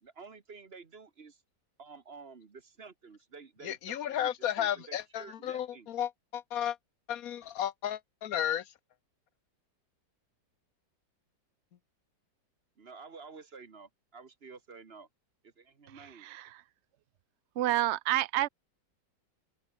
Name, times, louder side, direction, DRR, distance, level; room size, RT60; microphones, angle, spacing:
voice 1, 0.0-1.4 1.8-4.3 4.6-5.9 12.8-15.1 15.4-16.3, right 4 dB, 35° right, 1.4 m, -51 dB
voice 2, 3.6-6.8 7.1-8.6, left 10 dB, 55° left, 1.2 m, -33 dB
voice 3, 15.9-16.6 17.6-18.5, right 14 dB, 65° right, 0.7 m, -30 dB
open air
omnidirectional pair, 2.0 m